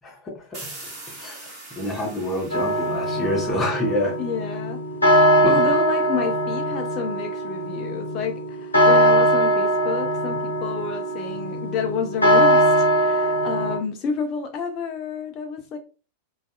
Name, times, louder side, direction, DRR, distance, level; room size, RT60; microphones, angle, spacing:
sound 1, 0.5-4.2, right 2 dB, 35° right, 1.3 m, -42 dB
voice 1, 1.2-4.2 5.4-5.7, left 1 dB, 20° left, 0 dB, 0.9 m, -27 dB
sound 2, 2.5-13.8, right 1 dB, 80° left, 0.8 m, -21 dB
voice 2, 4.2-4.8 5.5-15.8, left 6 dB, 35° left, 4 dB, 0.4 m, -30 dB
2.6 x 2.3 x 2.3 m, 0.34 s
figure-of-eight pair, 90°, 0 cm